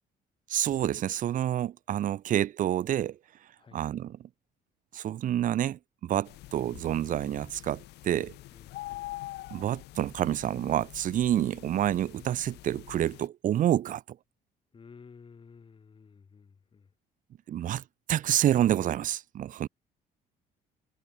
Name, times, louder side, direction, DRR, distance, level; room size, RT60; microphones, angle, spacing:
voice 1, 0.5-3.2 3.7-4.1 4.9-8.3 9.5-14.0 17.5-17.8 18.1-19.7, right 11 dB, 50° right, 0.7 m, -28 dB
sound 1, 6.2-13.3, left 17 dB, 85° left, 3.3 m, -45 dB
voice 2, 8.5-9.0 14.7-16.9, left 5 dB, 30° left, 5.1 m, -53 dB
cardioid pair, 110°, 17 cm